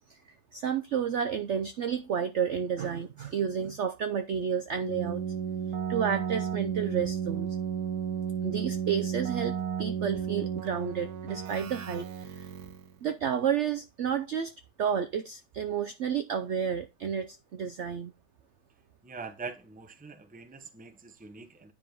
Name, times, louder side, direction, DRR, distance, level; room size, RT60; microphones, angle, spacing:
voice 1, 0.5-5.2 5.9-7.5 8.4-12.5 13.0-14.5 14.8-18.1, right 7 dB, 80° right, 0.6 m, -31 dB
Keyboard (musical), 4.8-12.9, right 8 dB, 65° right, 1.1 m, -33 dB
voice 2, 19.0-21.7, right 4 dB, 10° right, 0.5 m, -43 dB
9.7 x 3.8 x 5.2 m
omnidirectional pair, 1.9 m